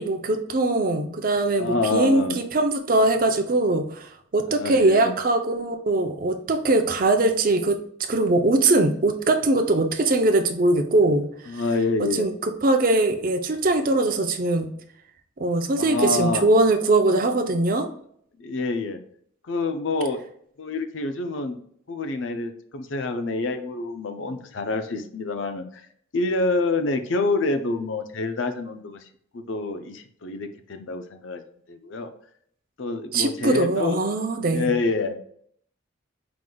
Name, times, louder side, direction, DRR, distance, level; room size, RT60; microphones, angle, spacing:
voice 1, 0.0-7.8 8.1-11.3 11.5-11.6 12.2-14.7 15.4-17.9 33.1-34.7, right 2 dB, 45° right, 5 dB, 0.5 m, -21 dB
voice 2, 1.6-2.4 4.5-5.1 11.5-12.3 15.8-16.5 18.4-19.0 19.5-20.2 20.6-21.6 21.9-25.8 26.1-29.0 29.3-31.4 31.7-32.1 32.8-34.0 34.5-35.2, left 3 dB, 75° left, 8 dB, 0.6 m, -27 dB
4.8 x 3.9 x 2.2 m, 0.65 s
head